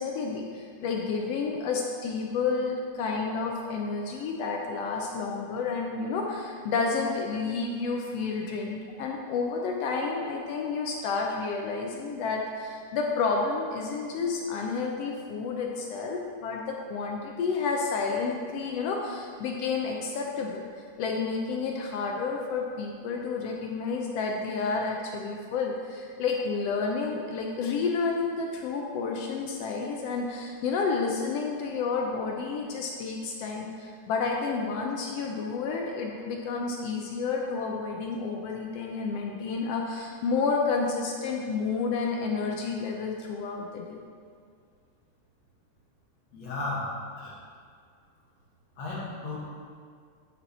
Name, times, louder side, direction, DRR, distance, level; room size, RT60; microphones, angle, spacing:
voice 1, 0.0-20.7 21.0-44.0, left 4 dB, 80° left, 0 dB, 1.4 m, -30 dB
voice 2, 46.3-47.3 48.8-49.4, left 2 dB, 60° left, -6 dB, 2.8 m, -34 dB
10.5 x 4.6 x 4.2 m, 2.2 s
omnidirectional pair, 3.5 m